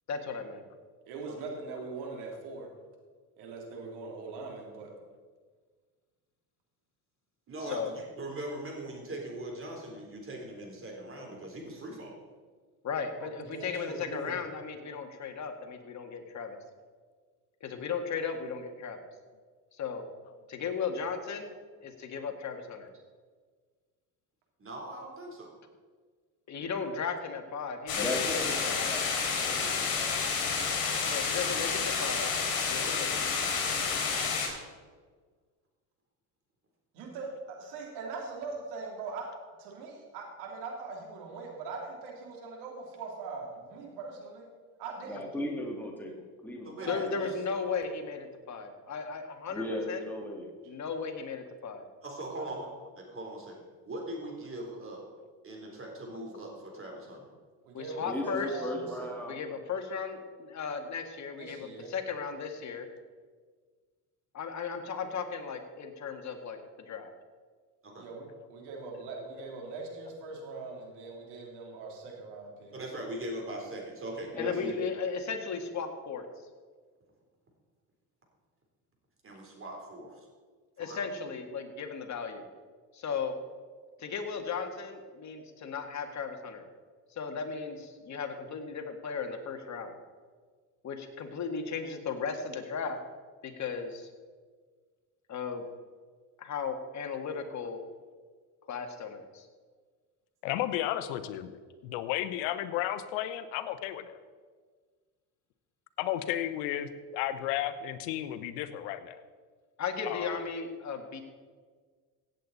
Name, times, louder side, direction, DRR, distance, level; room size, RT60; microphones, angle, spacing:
voice 1, 0.1-0.6 7.6-7.9 12.8-16.6 17.6-19.0 19.7-20.0 20.5-21.5 21.8-22.9 26.5-28.3 28.6-29.0 31.1-32.3 32.7-33.3 46.9-50.0 50.7-51.9 57.7-58.6 59.3-62.9 64.3-67.1 68.9-69.0 74.4-76.3 80.8-82.5 82.9-83.4 84.0-86.6 87.1-89.9 90.8-93.0 93.4-94.1 95.3-95.6 96.4-97.8 98.7-99.5 109.8-111.2, left 5 dB, 40° left, 4 dB, 1.9 m, -36 dB
voice 2, 1.1-2.7 3.4-4.9 13.2-14.3 36.9-39.3 39.6-44.5 44.8-45.3 46.8-47.3 52.4-52.6 57.6-59.1 61.4-61.9 68.0-72.7, right 4 dB, 75° right, 0 dB, 3.3 m, -41 dB
voice 3, 7.5-12.2 24.6-25.5 46.6-47.3 52.0-52.7 53.0-53.6 53.8-55.0 55.4-57.3 67.8-68.1 72.7-74.7 79.2-80.3 80.8-81.0, right 1 dB, 30° right, 0 dB, 3.8 m, -40 dB
sound 1, 27.9-34.5, left 5 dB, 60° left, 3.8 m, -30 dB
voice 4, 28.0-30.5 45.1-46.1 46.4-47.1 49.5-50.5 58.0-59.3 74.3-74.5, left 1 dB, 5° left, -1 dB, 2.4 m, -37 dB
voice 5, 39.0-39.4 41.7-41.8 42.8-42.9 48.1-48.3 60.2-60.3 69.4-69.5 70.0-70.7 100.4-104.2 106.0-109.2 110.0-110.4, left 12 dB, 80° left, 12 dB, 1.0 m, -34 dB
16.5 x 8.3 x 4.2 m, 1.5 s
supercardioid pair, 90°, 42 cm